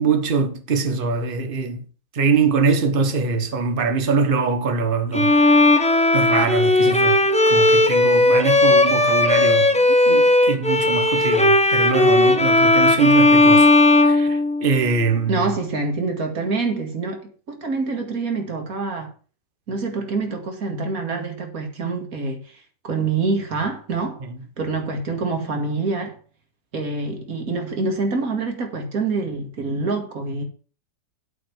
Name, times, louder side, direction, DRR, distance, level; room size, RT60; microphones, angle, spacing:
voice 1, 0.0-1.8 2.1-5.4 5.7-13.7 14.0-15.6 24.2-24.4, right 5 dB, 35° right, 1.3 m, -23 dB
Bowed string instrument, 5.1-14.9, left 2 dB, 10° left, 0.4 m, -16 dB
voice 2, 15.3-19.1 19.7-22.6 22.8-24.2 24.6-26.1 26.7-30.4, right 3 dB, 55° right, 2.6 m, -26 dB
8.2 x 5.8 x 7.2 m
omnidirectional pair, 1.8 m